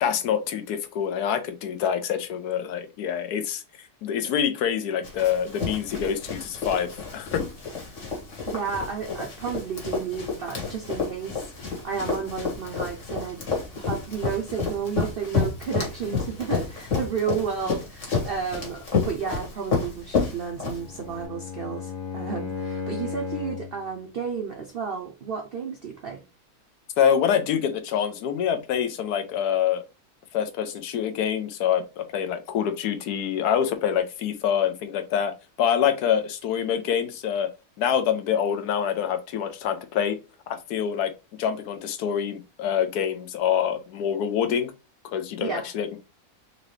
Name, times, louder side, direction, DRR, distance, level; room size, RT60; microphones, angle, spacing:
voice 1, 0.0-3.6 4.0-7.4 27.0-29.8 30.3-37.5 37.8-40.2 40.5-41.1 41.4-44.7 45.1-46.0, left 8 dB, 85° left, 1.2 m, -26 dB
Run, 5.0-21.2, left 5 dB, 50° left, 1.7 m, -30 dB
voice 2, 8.5-13.4 13.7-26.2 45.4-45.6, right 6 dB, 70° right, 0.5 m, -32 dB
Bowed string instrument, 20.7-23.8, left 6 dB, 70° left, 1.6 m, -34 dB
4.0 x 2.9 x 3.1 m
omnidirectional pair, 1.6 m